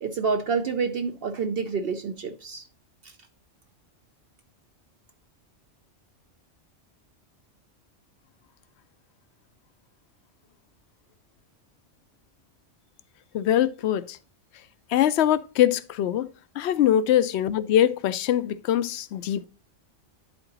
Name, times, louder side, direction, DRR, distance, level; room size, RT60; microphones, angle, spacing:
voice 1, 0.0-2.6, right 5 dB, 60° right, 0.7 m, -28 dB
voice 2, 13.3-14.2 14.9-16.3 16.6-19.5, left 11 dB, 70° left, 0.8 m, -23 dB
11.0 x 3.9 x 3.9 m
omnidirectional pair, 1.2 m